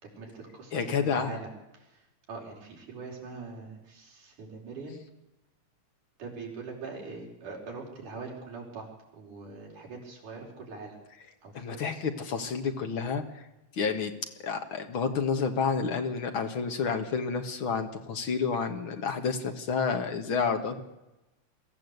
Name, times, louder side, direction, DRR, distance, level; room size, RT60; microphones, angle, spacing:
voice 1, 0.0-5.0 6.2-11.0 11.4-11.8, right 4 dB, 70° right, -1 dB, 5.8 m, -43 dB
voice 2, 0.7-1.4 11.5-11.9 12.2-13.2 13.7-14.1 14.4-20.8, left 5 dB, 45° left, 6 dB, 2.0 m, -29 dB
23.5 x 14.0 x 8.1 m, 0.99 s
omnidirectional pair, 3.7 m